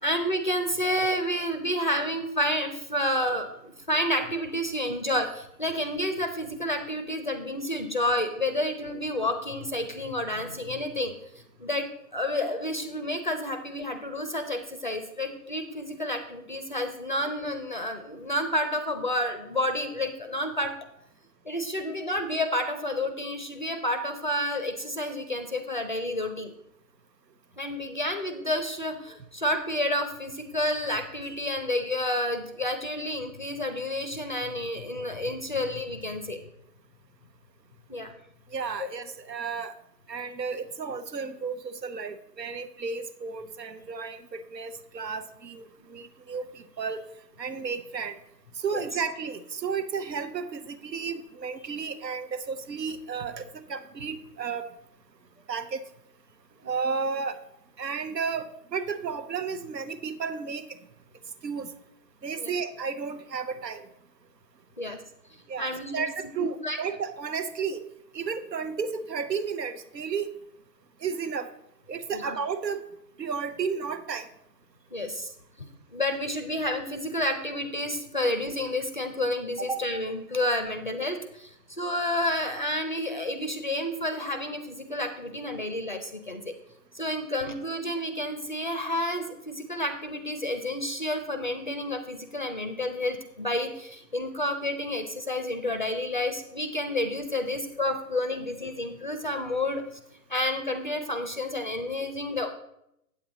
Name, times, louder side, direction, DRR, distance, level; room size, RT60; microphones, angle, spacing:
voice 1, 0.0-11.9 12.1-20.7 21.5-26.5 27.6-36.4 37.9-38.1 48.7-48.9 62.4-62.5 64.8-65.0 65.6-66.0 66.4-66.8 72.1-72.4 74.9-75.3 75.6-86.5 86.9-99.8 100.3-102.5, left 1 dB, 30° left, 8 dB, 0.4 m, -30 dB
voice 2, 38.5-39.7 40.1-47.1 47.4-48.1 48.6-54.7 55.5-55.8 56.6-57.4 57.8-60.8 61.4-61.7 62.2-63.9 65.5-67.8 68.1-70.3 71.0-71.5 71.9-72.8 73.2-74.3 79.6-79.7, right 5 dB, 90° right, 12 dB, 0.9 m, -33 dB
8.3 x 7.8 x 3.9 m, 0.81 s
figure-of-eight pair, 140°, 48 cm